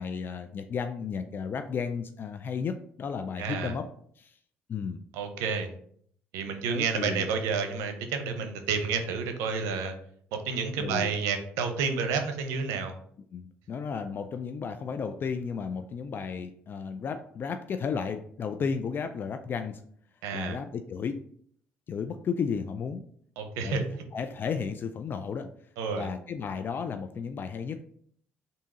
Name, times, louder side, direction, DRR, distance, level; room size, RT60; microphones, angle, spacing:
voice 1, 0.0-3.8 4.2-4.4 4.7-5.0 6.7-7.3 10.8-11.1 13.3-19.8 20.3-21.2 21.9-23.0 23.6-25.5 25.9-27.8, left 6 dB, 45° left, 8 dB, 0.3 m, -33 dB
voice 2, 3.4-3.7 5.1-5.7 6.3-9.9 10.3-12.9 20.2-20.6 23.4-23.8 25.8-26.1, right 5 dB, 85° right, 6 dB, 0.6 m, -30 dB
3.6 x 2.7 x 4.1 m, 0.63 s
supercardioid pair, 80°, 5 cm